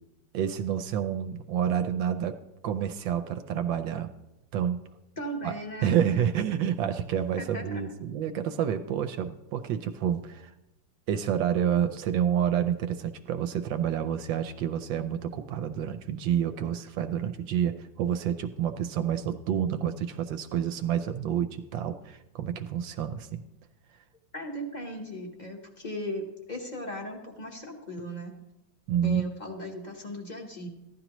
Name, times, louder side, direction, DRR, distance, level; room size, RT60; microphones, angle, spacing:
voice 1, 0.3-2.4 2.6-4.1 4.5-4.8 5.4-5.5 5.8-10.5 11.1-23.4 28.9-29.2, right 9 dB, 80° right, 8 dB, 1.3 m, -29 dB
voice 2, 5.2-6.0 7.4-7.8 24.3-28.3 29.0-30.7, equal, 30° left, 2 dB, 1.0 m, -37 dB
14.5 x 11.5 x 3.0 m, 0.95 s
omnidirectional pair, 2.1 m